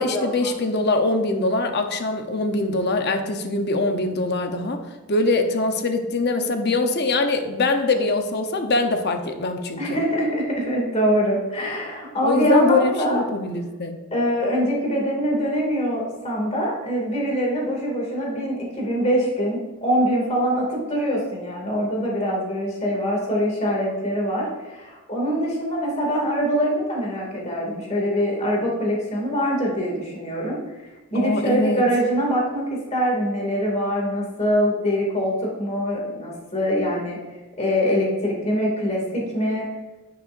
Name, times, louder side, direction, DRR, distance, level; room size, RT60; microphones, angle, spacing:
voice 1, 0.0-4.8 5.1-10.0 12.2-14.0 31.1-31.8, left 2 dB, 50° left, 5 dB, 0.9 m, -23 dB
voice 2, 9.8-13.2 14.1-30.6 31.1-37.2 37.6-39.7, equal, 30° left, -2 dB, 2.4 m, -23 dB
10.5 x 10.0 x 2.6 m, 1.2 s
head